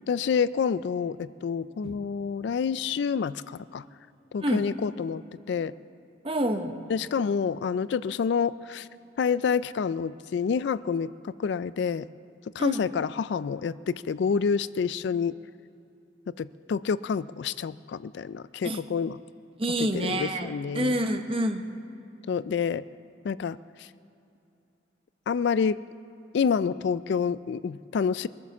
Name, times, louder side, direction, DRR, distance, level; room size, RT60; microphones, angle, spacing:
voice 1, 0.1-3.8 4.3-5.2 5.5-5.7 6.9-8.9 9.2-12.1 12.6-15.4 16.4-19.2 19.8-21.0 22.3-22.8 23.2-23.9 25.3-25.8 26.3-28.3, left 6 dB, 65° left, 17 dB, 0.3 m, -28 dB
voice 2, 6.2-6.8 12.6-12.8 18.6-18.8 19.6-21.6, right 1 dB, 30° right, 6 dB, 0.9 m, -28 dB
22.5 x 8.6 x 7.1 m, 2.7 s
head